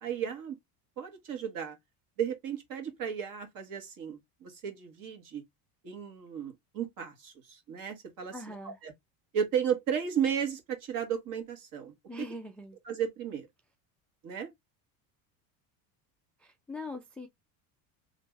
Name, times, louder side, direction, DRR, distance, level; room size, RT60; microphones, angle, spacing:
voice 1, 0.0-0.6 1.0-1.8 2.2-5.4 5.8-8.3 8.6-8.9 9.3-12.3 12.9-13.5 14.2-14.5, right 8 dB, 45° right, 1.7 m, -34 dB
voice 2, 8.3-8.8 12.1-12.8 16.4-17.3, left 2 dB, 5° left, 0.3 m, -42 dB
3.2 x 2.6 x 3.3 m
supercardioid pair, 115°, 44 cm